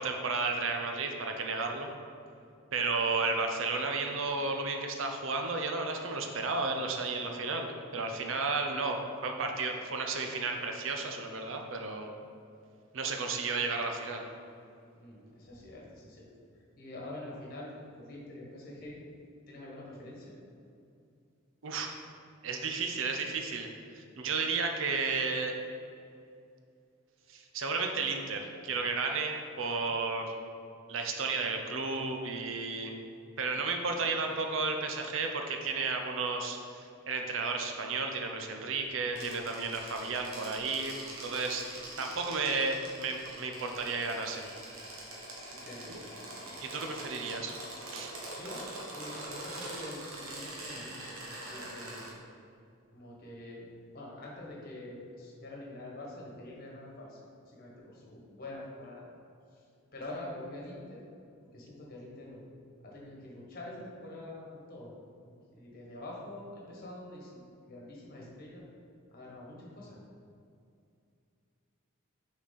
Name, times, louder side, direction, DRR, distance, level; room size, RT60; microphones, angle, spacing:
voice 1, 0.0-1.9 2.7-12.1 12.9-14.2 21.6-21.9 22.4-23.7 23.9-25.5 27.3-30.3 30.9-33.0 33.4-40.9 41.2-41.6 42.0-44.5 45.9-46.0 46.6-47.5 47.9-48.1, right 4 dB, 70° right, 3 dB, 0.6 m, -33 dB
voice 2, 14.9-16.3 16.8-19.0 19.5-20.4 45.5-46.2 48.0-48.6 48.9-51.2 51.5-52.1 52.9-53.7 53.9-59.0 59.5-59.6 59.9-61.0 61.5-62.4 62.8-64.9 65.2-68.6 69.1-70.0, left 1 dB, 45° left, -4 dB, 1.4 m, -46 dB
sound 1, 39.1-52.1, right 1 dB, 85° right, 1.2 m, -44 dB
6.0 x 4.2 x 4.1 m, 2.5 s
head